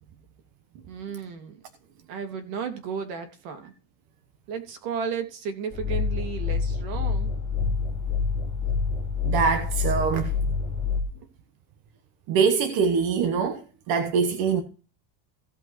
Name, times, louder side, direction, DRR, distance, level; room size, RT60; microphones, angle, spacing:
voice 1, 0.7-1.6 2.1-3.7 4.5-7.3 11.1-11.3, right 6 dB, 65° right, 3.1 m, -34 dB
sound 1, 5.7-11.0, left 5 dB, 10° left, 1.6 m, -27 dB
voice 2, 9.2-10.3 12.3-13.6 13.9-14.6, right 6 dB, 45° right, 1.3 m, -23 dB
16.5 x 5.5 x 4.7 m
cardioid pair, 175°, 50 cm